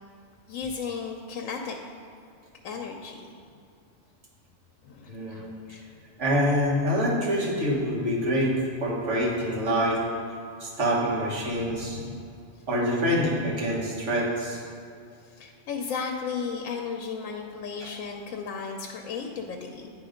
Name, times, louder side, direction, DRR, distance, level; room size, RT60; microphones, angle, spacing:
voice 1, 0.5-1.8 2.6-3.2 4.8-5.9 11.5-12.2 15.2-19.9, left 5 dB, 85° left, 2 dB, 1.0 m, -35 dB
voice 2, 5.1-5.5 6.2-8.5 8.8-10.0 10.6-12.0 12.7-14.6, equal, 65° right, -4 dB, 1.6 m, -26 dB
9.3 x 3.3 x 5.0 m, 2.4 s
omnidirectional pair, 1.3 m